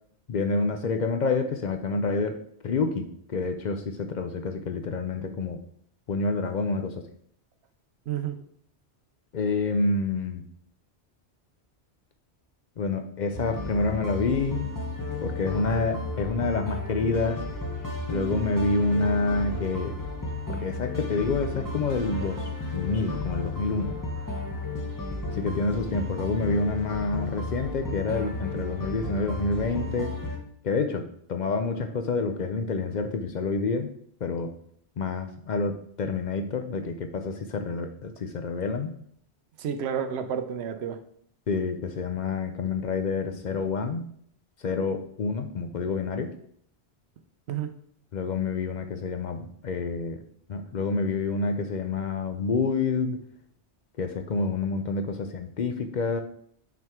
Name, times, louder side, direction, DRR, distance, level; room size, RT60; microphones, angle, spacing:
voice 1, 0.3-2.4 2.6-5.6 6.1-6.9 9.3-10.4 12.8-14.7 15.2-17.4 18.1-20.0 20.5-23.9 25.3-30.1 30.6-33.9 34.2-34.5 35.0-38.9 41.5-44.0 44.6-46.3 48.1-50.2 50.5-53.2 54.0-56.2, left 3 dB, 55° left, 6 dB, 0.6 m, -28 dB
voice 2, 8.1-8.4 39.6-41.0 47.5-47.7, right 8 dB, 70° right, 9 dB, 0.9 m, -30 dB
sound 1, 13.3-30.4, left 2 dB, 20° left, 0.8 m, -33 dB
5.9 x 4.5 x 3.5 m, 0.64 s
omnidirectional pair, 1.2 m